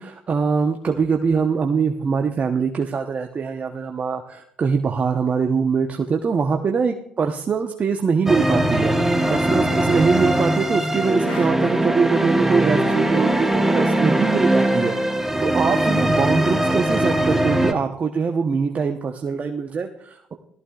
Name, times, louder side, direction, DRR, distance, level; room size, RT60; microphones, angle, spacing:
voice 1, 0.0-15.0 15.4-20.3, right 5 dB, 40° right, 4 dB, 1.0 m, -23 dB
sound 1, 8.3-17.7, right 1 dB, 10° right, 1.3 m, -20 dB
Wind instrument woodwind instrument, 11.2-15.1, left 2 dB, 65° left, 4.2 m, -45 dB
18.0 x 14.0 x 2.5 m, 0.68 s
hypercardioid pair, 55°, 4 cm